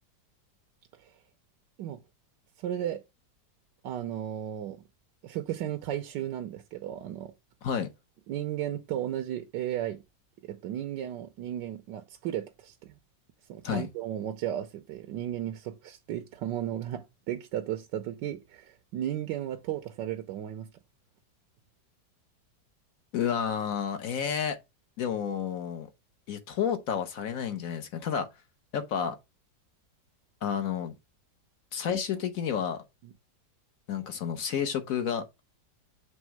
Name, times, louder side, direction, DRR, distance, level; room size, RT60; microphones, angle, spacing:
voice 1, 2.6-3.0 3.8-4.8 5.2-7.3 8.3-10.0 10.4-12.9 13.5-20.7 33.0-33.1, right 11 dB, 80° right, 1.2 m, -34 dB
voice 2, 23.1-24.6 25.0-25.9 26.3-28.3 28.7-29.1 30.4-30.9 31.7-32.8 33.9-35.3, left 8 dB, 55° left, 1.1 m, -30 dB
6.2 x 3.4 x 4.6 m
omnidirectional pair, 2.0 m